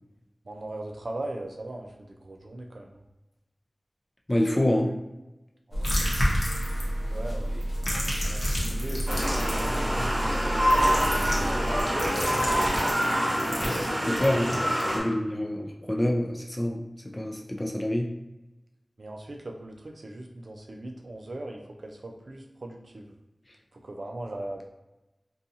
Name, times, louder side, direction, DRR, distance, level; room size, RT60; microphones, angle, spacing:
voice 1, 0.4-2.9 4.5-5.0 5.7-6.7 7.1-11.1 19.0-23.1 23.7-24.7, right 1 dB, 70° right, 1 dB, 0.4 m, -40 dB
voice 2, 4.3-5.0 13.7-18.1, left 1 dB, 25° left, 1 dB, 0.4 m, -27 dB
sound 1, 5.7-11.8, right 1 dB, 80° left, 0.5 m, -31 dB
sound 2, 5.8-7.1 7.6-9.8 10.7-14.8, equal, 60° left, 0.8 m, -31 dB
sound 3, 9.1-15.0, equal, 30° right, 1.0 m, -26 dB
2.6 x 2.3 x 2.7 m, 0.98 s
wide cardioid pair, 50°, 0 cm